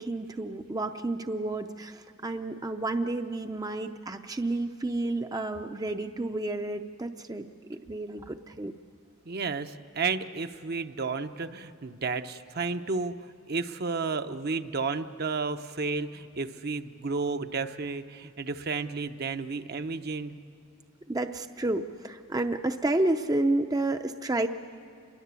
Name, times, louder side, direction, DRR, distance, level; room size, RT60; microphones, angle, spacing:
voice 1, 0.0-8.7 21.1-24.5, right 2 dB, 20° right, 7 dB, 0.6 m, -30 dB
voice 2, 9.3-20.4, right 4 dB, 50° right, 8 dB, 0.8 m, -32 dB
27.5 x 21.5 x 8.2 m, 2.4 s
head